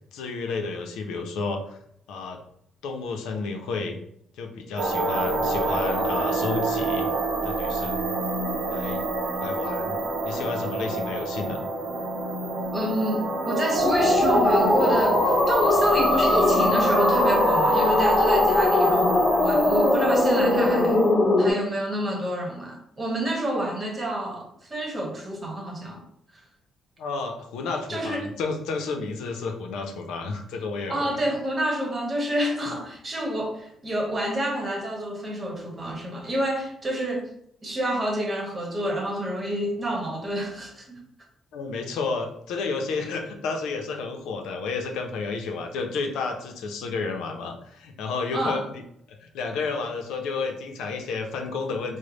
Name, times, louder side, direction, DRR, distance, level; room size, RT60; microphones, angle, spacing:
voice 1, 0.1-1.8 2.1-2.4 2.8-4.0 4.4-7.1 7.4-8.1 8.7-9.0 9.4-10.0 10.2-11.6 27.0-31.2 41.5-48.6 49.1-52.0, left 4 dB, 90° left, 0.5 m, -31 dB
sound 1, 4.8-21.1, right 2 dB, 80° right, 0.7 m, -27 dB
voice 2, 12.7-21.0 21.4-26.0 27.9-28.3 30.9-37.3 37.6-41.0 48.3-48.6, equal, 30° right, 1.0 m, -28 dB
sound 2, 13.8-21.5, left 2 dB, 40° left, 1.1 m, -21 dB
3.2 x 2.1 x 3.8 m
cardioid pair, 90°, 0 cm